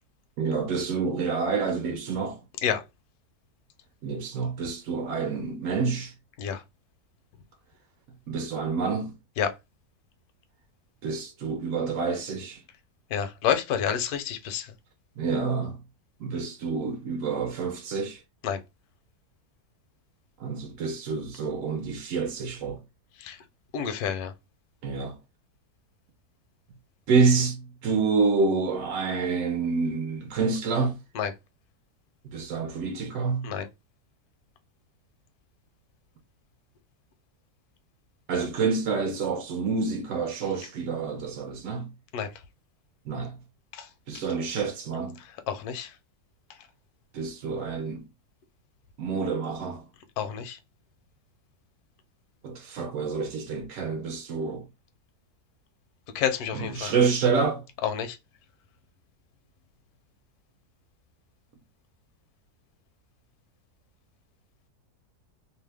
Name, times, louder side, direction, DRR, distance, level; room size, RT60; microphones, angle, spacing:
voice 1, 0.4-2.4 4.0-6.1 8.3-9.1 11.0-12.6 15.2-15.8 16.2-18.2 20.4-22.8 24.8-25.1 27.1-31.0 32.2-33.5 38.3-41.9 43.1-43.3 44.1-45.2 47.1-48.1 49.0-49.8 52.4-54.7 56.5-57.6, right 4 dB, 65° right, 0.9 m, -28 dB
voice 2, 13.1-14.7 18.4-18.6 23.2-23.4 23.7-24.3 31.1-31.3 33.4-33.7 42.1-42.3 43.7-43.9 45.5-45.9 50.2-50.6 56.1-56.9 57.8-58.2, left 8 dB, 75° left, 1.1 m, -28 dB
2.8 x 2.1 x 3.2 m
omnidirectional pair, 1.7 m